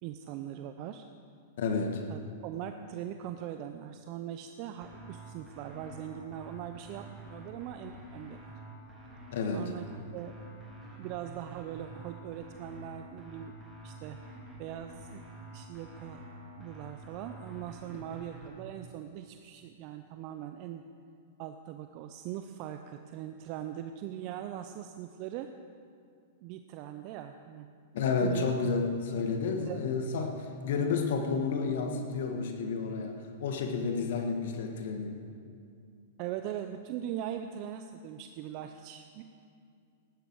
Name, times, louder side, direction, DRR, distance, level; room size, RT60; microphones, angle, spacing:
voice 1, 0.0-1.0 2.1-8.5 9.5-9.8 10.1-10.3 11.0-13.6 13.8-14.2 14.6-15.2 15.5-16.2 16.6-20.8 21.4-25.5 26.4-27.7 28.2-28.5 29.6-29.8 36.2-39.2, right 11 dB, 45° right, 7 dB, 0.6 m, -41 dB
voice 2, 1.6-2.1 9.3-9.7 27.9-35.2, left 4 dB, 65° left, 4 dB, 1.5 m, -31 dB
sound 1, 4.8-18.5, right 1 dB, 15° right, 3.5 m, -48 dB
15.5 x 12.0 x 4.7 m, 2.4 s
hypercardioid pair, 115°, 0 cm